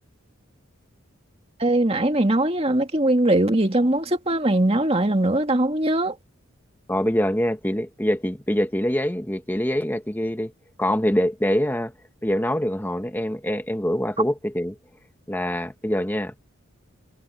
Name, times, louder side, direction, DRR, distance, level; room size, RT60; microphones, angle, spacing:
voice 1, 1.6-6.2, right 1 dB, 30° right, 2.1 m, -21 dB
voice 2, 6.9-10.5 10.8-11.9 12.2-14.8 15.3-16.4, equal, 10° left, 1.2 m, -24 dB
head